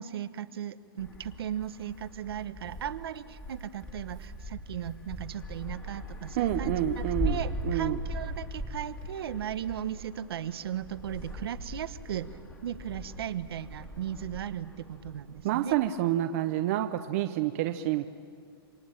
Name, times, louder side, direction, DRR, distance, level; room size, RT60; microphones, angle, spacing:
voice 1, 0.0-12.3 12.6-15.8, right 10 dB, 75° right, 12 dB, 1.2 m, -37 dB
Wind, 1.0-15.9, equal, 15° left, 2.2 m, -39 dB
voice 2, 6.4-8.0 15.4-18.1, right 12 dB, 35° right, 7 dB, 0.8 m, -28 dB
27.0 x 24.5 x 8.9 m, 2.3 s
supercardioid pair, 170°, 13 cm